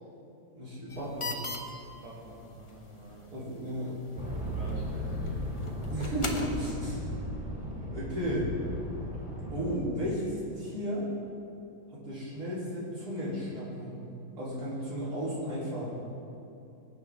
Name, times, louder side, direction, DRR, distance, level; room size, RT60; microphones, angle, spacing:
voice 1, 0.5-1.3 3.2-4.0 5.9-7.0 7.8-8.5 9.4-11.0 11.9-13.9 14.4-16.0, equal, 55° right, -9 dB, 4.4 m, -34 dB
sound 1, 0.9-6.7, left 2 dB, 30° left, 0.6 m, -42 dB
voice 2, 1.9-3.2 4.4-5.4, right 1 dB, 85° right, -7 dB, 3.2 m, -48 dB
sound 2, 4.1-9.8, equal, 5° right, 2.9 m, -36 dB
21.5 x 9.2 x 3.8 m, 2.7 s
omnidirectional pair, 2.0 m